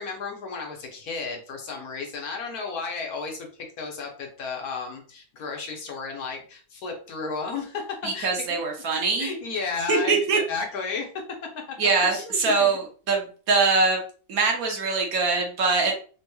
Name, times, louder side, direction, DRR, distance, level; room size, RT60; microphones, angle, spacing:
voice 1, 0.0-8.6 9.2-11.2 11.8-12.7, left 4 dB, 65° left, 1 dB, 1.3 m, -33 dB
voice 2, 8.0-9.3 9.9-10.4 11.8-14.0 14.3-15.9, right 4 dB, 65° right, 1 dB, 1.2 m, -23 dB
3.5 x 2.8 x 2.3 m, 0.41 s
omnidirectional pair, 1.7 m